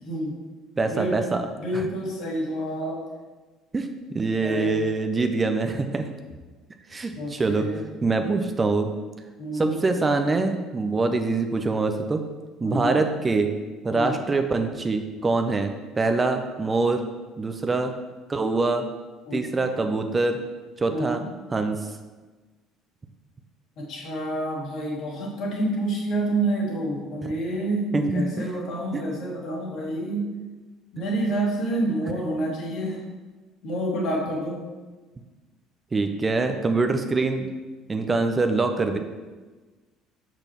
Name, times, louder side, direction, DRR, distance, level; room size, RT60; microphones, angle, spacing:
voice 1, 0.0-0.3 0.9-1.1 1.6-3.0 4.4-4.7 7.1-7.8 9.4-9.8 12.6-13.0 13.9-14.2 19.3-19.5 20.9-21.2 23.9-30.3 30.9-33.0 33.6-34.6, right 1 dB, 55° left, -3 dB, 1.9 m, -28 dB
voice 2, 0.8-1.4 1.7-1.9 3.7-6.0 6.9-7.7 8.0-8.9 9.5-12.2 12.6-13.5 13.8-17.0 17.4-17.9 18.3-18.8 19.3-20.4 20.8-21.2 21.5-21.9 27.2-27.3 27.9-28.5 28.9-29.0 35.9-37.5 37.9-39.0, right 3 dB, 25° right, 6 dB, 0.6 m, -24 dB
6.7 x 6.0 x 2.9 m, 1.3 s
figure-of-eight pair, 55°, 0 cm